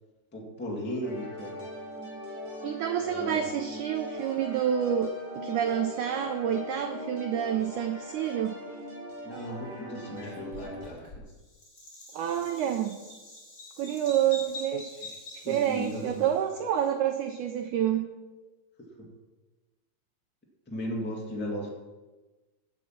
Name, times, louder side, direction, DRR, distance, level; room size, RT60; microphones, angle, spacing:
voice 1, 0.3-1.6 3.0-3.4 9.2-11.3 15.4-16.2 19.0-19.1 20.7-21.7, equal, 10° left, -1 dB, 0.6 m, -36 dB
sound 1, 1.0-10.9, left 1 dB, 30° right, 5.0 m, -40 dB
voice 2, 2.6-8.6 12.1-12.9 13.8-15.1 15.5-18.1, right 9 dB, 80° right, 5 dB, 1.8 m, -28 dB
Bird vocalization bird call bird song, 10.1-16.4, left 2 dB, 25° left, 3.0 m, -45 dB
15.5 x 6.1 x 5.9 m, 1.2 s
omnidirectional pair, 4.3 m